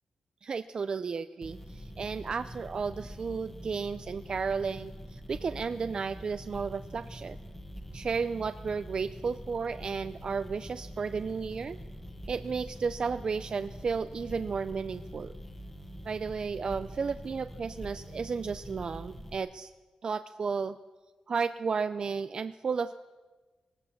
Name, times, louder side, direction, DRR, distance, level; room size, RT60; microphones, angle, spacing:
voice 1, 0.4-7.4 7.9-11.8 12.3-15.3 16.1-19.7 20.0-20.8 21.3-22.9, right 5 dB, 40° right, 11 dB, 0.5 m, -33 dB
sound 1, 1.4-19.4, equal, 10° left, 1.8 m, -45 dB
21.0 x 17.5 x 7.3 m, 1.3 s
wide cardioid pair, 165°, 2 cm